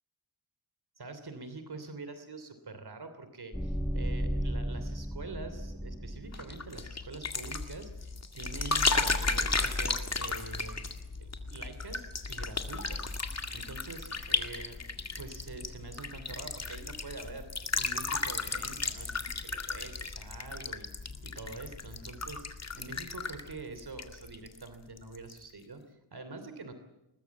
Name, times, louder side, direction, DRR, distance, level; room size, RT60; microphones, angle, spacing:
voice 1, 1.0-13.1 13.5-14.8 15.2-26.7, right 3 dB, 55° right, 9 dB, 3.1 m, -45 dB
sound 1, 3.5-6.7, equal, ahead, 1.9 m, -34 dB
sound 2, 6.3-24.7 25.0-25.4, left 3 dB, 35° left, 2.0 m, -34 dB
21.5 x 20.5 x 8.4 m, 0.93 s
wide cardioid pair, 110°, 46 cm